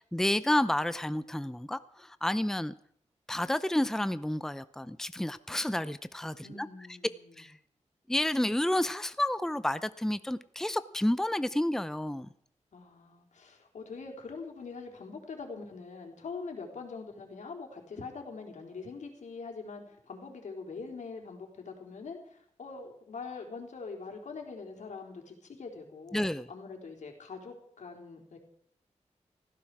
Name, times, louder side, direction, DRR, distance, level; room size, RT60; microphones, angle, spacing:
voice 1, 0.0-2.7 3.3-6.7 7.4-7.5 8.1-12.3 26.1-26.5, left 1 dB, 5° left, 14 dB, 0.7 m, -30 dB
voice 2, 6.4-7.5 12.7-26.2 26.5-28.4, left 4 dB, 85° left, 2 dB, 3.9 m, -43 dB
18.0 x 16.0 x 4.9 m, 0.66 s
wide cardioid pair, 90°, 12 cm